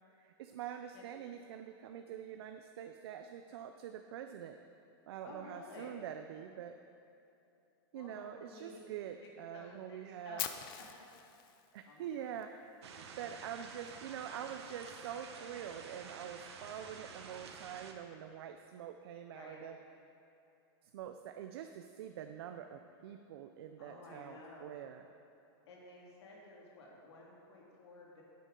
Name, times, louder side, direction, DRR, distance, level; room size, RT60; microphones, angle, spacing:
voice 1, 0.2-4.6 5.1-6.7 7.9-10.4 11.7-12.9 13.2-19.8 20.8-25.0, right 9 dB, 70° right, 6 dB, 0.5 m, -45 dB
voice 2, 5.2-6.0 7.9-8.8 9.2-10.5 10.9-11.0 11.9-12.3 13.1-13.4 19.3-19.7 23.8-24.7 25.7-28.2, left 2 dB, 85° left, -3 dB, 2.2 m, -54 dB
Fire, 10.4-12.4, left 11 dB, 50° left, 0.6 m, -43 dB
sound 1, 12.8-17.9, right 5 dB, 90° right, 1.0 m, -50 dB
11.0 x 8.3 x 3.8 m, 2.7 s
supercardioid pair, 155°, 14 cm